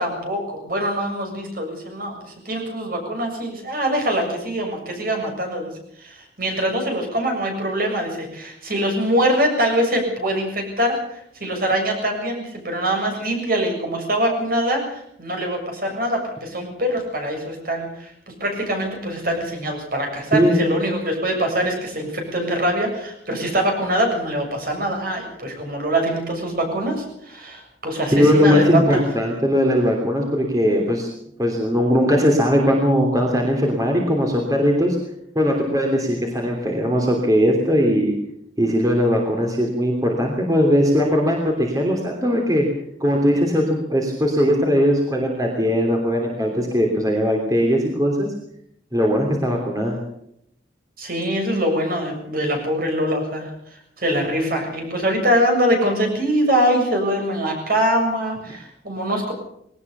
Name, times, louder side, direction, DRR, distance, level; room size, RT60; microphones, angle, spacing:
voice 1, 0.0-5.7 6.0-11.0 11.4-18.1 18.4-29.0 51.0-53.5 54.0-59.3, equal, 55° right, 3 dB, 7.3 m, -23 dB
voice 2, 20.3-20.6 28.1-31.1 31.4-35.0 35.3-38.2 38.6-42.7 43.0-48.3 48.9-50.0, equal, 20° right, 1 dB, 3.1 m, -19 dB
20.5 x 18.5 x 6.9 m, 0.73 s
head